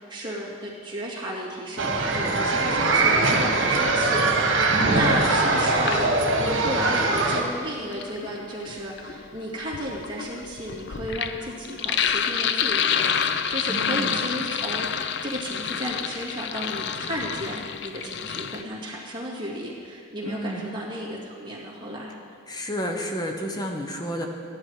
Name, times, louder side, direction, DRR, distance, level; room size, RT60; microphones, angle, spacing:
voice 1, 0.1-6.0 6.4-13.1 13.5-22.1, equal, 25° right, -4 dB, 2.4 m, -33 dB
sound 1, 1.8-7.4, right 3 dB, 75° right, 1.4 m, -22 dB
voice 2, 4.7-5.0 13.7-14.2 20.2-20.7 22.5-24.3, equal, 20° left, 2 dB, 0.9 m, -30 dB
Sink (filling or washing), 5.0-6.5 7.7-18.6, left 7 dB, 60° left, 0.5 m, -29 dB
13.5 x 11.0 x 4.8 m, 2.2 s
head